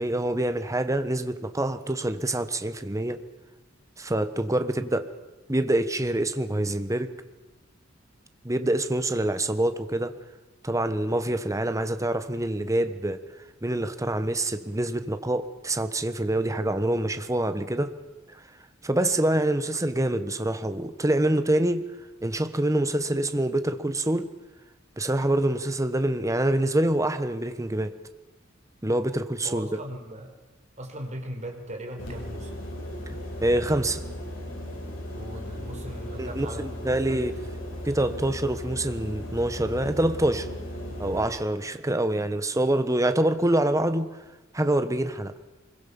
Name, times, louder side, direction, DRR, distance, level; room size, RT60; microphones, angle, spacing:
voice 1, 0.0-3.2 4.0-5.1 5.5-7.1 8.4-10.1 10.6-13.2 13.6-17.9 18.8-21.9 22.2-24.3 25.0-28.0 28.8-29.7 33.4-34.0 36.2-37.3 37.8-40.5 41.0-44.1 44.5-45.3, right 1 dB, 15° right, 10 dB, 1.3 m, -26 dB
voice 2, 29.4-30.3 30.8-32.5 35.1-36.7 37.1-37.5 41.6-41.7, right 1 dB, 35° right, 3 dB, 4.6 m, -39 dB
sound 1, 32.0-41.3, left 1 dB, 80° left, 7.2 m, -36 dB
25.0 x 22.0 x 7.1 m, 1.1 s
head